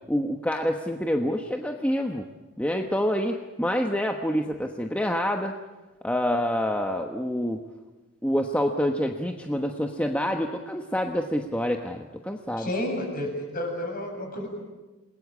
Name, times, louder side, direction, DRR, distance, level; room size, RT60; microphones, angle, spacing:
voice 1, 0.1-2.3 2.6-5.5 6.0-7.6 8.2-12.7, equal, 5° left, 3 dB, 1.1 m, -27 dB
voice 2, 12.6-14.6, left 1 dB, 40° left, 2 dB, 7.5 m, -31 dB
28.0 x 20.5 x 8.6 m, 1.2 s
head